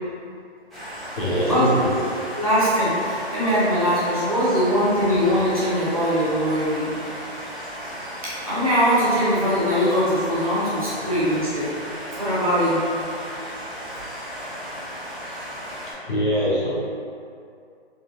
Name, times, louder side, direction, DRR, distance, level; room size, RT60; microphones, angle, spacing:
sound 1, 0.7-15.9, equal, ahead, 0.4 m, -35 dB
voice 1, 1.2-2.0 6.2-6.3 11.0-11.1 16.0-16.7, equal, 50° left, -8 dB, 0.9 m, -23 dB
voice 2, 2.4-6.9 8.2-11.7 12.2-12.9, equal, 35° right, -11 dB, 0.7 m, -21 dB
3.5 x 2.2 x 2.8 m, 2.4 s
hypercardioid pair, 175°, 33 cm